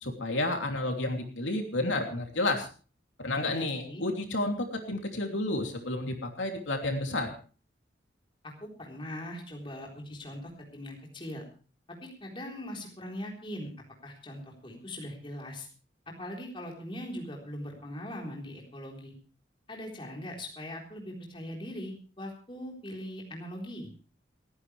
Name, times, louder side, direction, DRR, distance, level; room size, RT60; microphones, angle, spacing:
voice 1, 0.0-2.7 3.2-7.3, left 2 dB, 85° left, 3 dB, 3.0 m, -31 dB
voice 2, 3.4-4.0 8.4-11.4 12.0-13.7 14.0-15.7 16.1-19.1 19.7-23.9, left 1 dB, 25° left, -1 dB, 4.0 m, -41 dB
29.5 x 9.9 x 3.4 m, 0.38 s
head